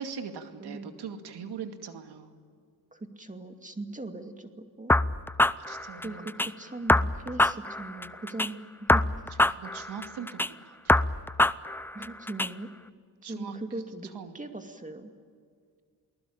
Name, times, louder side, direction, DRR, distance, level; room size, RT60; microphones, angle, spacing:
voice 1, 0.0-2.3 5.6-6.3 9.6-11.0 13.2-13.5 14.1-14.3, right 6 dB, 75° right, 6 dB, 2.4 m, -40 dB
voice 2, 0.6-1.0 2.9-5.0 6.0-9.5 11.9-12.7 13.3-14.1 14.3-15.1, right 2 dB, 20° right, 6 dB, 2.4 m, -39 dB
sound 1, 4.9-6.5 6.9-8.5 8.9-10.5 10.9-12.5, left 1 dB, 5° left, 0.6 m, -25 dB
29.0 x 20.0 x 8.8 m, 2.1 s
cardioid pair, 75°, 39 cm